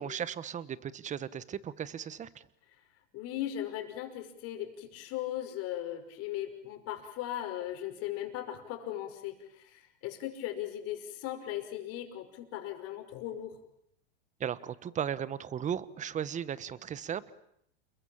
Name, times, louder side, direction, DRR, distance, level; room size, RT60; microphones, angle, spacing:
voice 1, 0.0-2.5 14.4-17.3, right 8 dB, 20° right, 17 dB, 1.3 m, -36 dB
voice 2, 3.1-13.6, left 12 dB, 45° left, 6 dB, 5.6 m, -38 dB
29.5 x 21.5 x 8.8 m, 0.73 s
hypercardioid pair, 120°, 33 cm